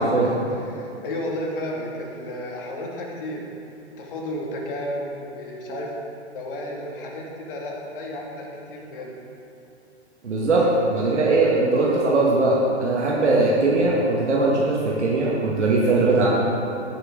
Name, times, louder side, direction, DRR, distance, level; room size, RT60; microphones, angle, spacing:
voice 1, 0.0-3.5 4.0-5.9 6.3-9.2 10.6-10.8, left 1 dB, 50° left, -2 dB, 2.2 m, -33 dB
voice 2, 10.2-16.3, right 2 dB, 80° right, -5 dB, 1.7 m, -20 dB
15.5 x 6.6 x 3.8 m, 2.8 s
hypercardioid pair, 125°, 34 cm